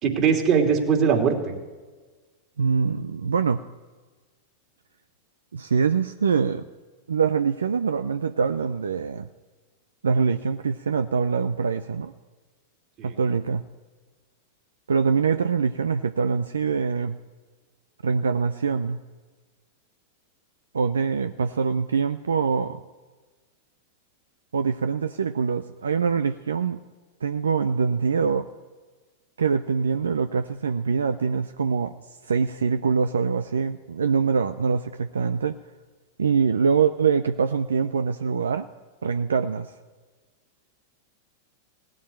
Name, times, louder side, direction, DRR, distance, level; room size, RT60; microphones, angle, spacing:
voice 1, 0.0-1.5 13.0-13.1, right 6 dB, 40° right, 2 dB, 2.9 m, -21 dB
voice 2, 2.6-3.6 5.5-6.6 7.1-9.3 10.0-12.1 13.0-13.6 14.9-17.2 18.0-19.0 20.7-22.8 24.5-26.8 27.2-28.5 29.4-31.9 32.2-35.6 36.2-38.7 39.0-39.7, right 5 dB, 80° right, 10 dB, 0.5 m, -24 dB
17.0 x 7.3 x 10.0 m, 1.3 s
hypercardioid pair, 100°, 0 cm